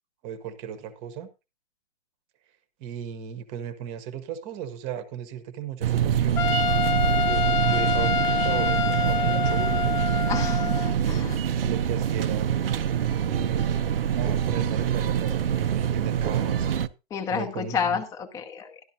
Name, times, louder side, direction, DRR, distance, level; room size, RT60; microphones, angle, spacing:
voice 1, 0.2-1.3 2.8-6.6 7.2-8.8 9.0-10.0 11.5-12.5 13.2-16.7 17.3-18.0, right 8 dB, 25° right, 1.0 m, -36 dB
sound 1, 5.8-16.9, right 9 dB, 70° right, 0.7 m, -25 dB
Trumpet, 6.4-11.0, left 6 dB, 50° left, 0.9 m, -26 dB
voice 2, 10.3-11.4 17.1-18.8, left 6 dB, 10° left, 0.8 m, -30 dB
12.5 x 11.5 x 2.7 m
hypercardioid pair, 145°, 30 cm